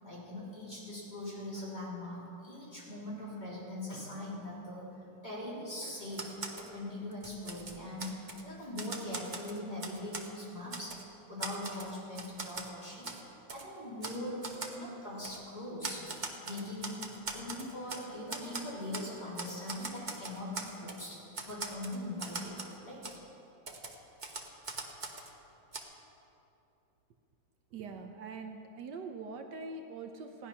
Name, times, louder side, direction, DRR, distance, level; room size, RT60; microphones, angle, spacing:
voice 1, 0.0-4.9 5.2-11.0 11.3-13.1 13.5-14.4 14.7-16.0 16.5-17.1 17.3-21.2 21.4-22.6 22.8-23.0, left 1 dB, 25° left, -7 dB, 3.6 m, -41 dB
Typewriter, 6.1-6.7 7.1-8.4 8.8-10.3 10.7-11.0 11.4-12.7 13.0-13.2 13.5-13.6 14.0-14.2 14.4-14.8 15.2-15.4 15.8-18.0 18.3-19.1 19.4-21.0 21.3-22.8 23.0-23.2 23.7-25.3 25.7-25.8, right 3 dB, 30° right, 0.9 m, -41 dB
voice 2, 27.7-30.5, right 4 dB, 70° right, 5 dB, 1.4 m, -43 dB
16.0 x 9.9 x 5.7 m, 2.9 s
omnidirectional pair, 1.9 m